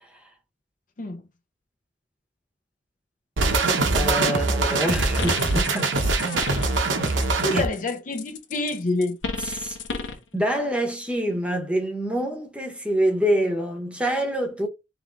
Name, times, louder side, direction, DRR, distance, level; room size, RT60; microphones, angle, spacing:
sound 1, 3.4-7.7, right 3 dB, 90° right, 0.9 m, -23 dB
voice 1, 3.9-6.0 7.5-7.6 9.4-9.8 10.3-14.7, equal, 5° right, 0.9 m, -26 dB
sound 2, 4.9-7.4 7.7-10.3, left 4 dB, 90° left, 0.9 m, -34 dB
voice 2, 6.0-6.4 6.9-9.2, left 2 dB, 45° left, 0.6 m, -29 dB
3.5 x 3.1 x 3.8 m
head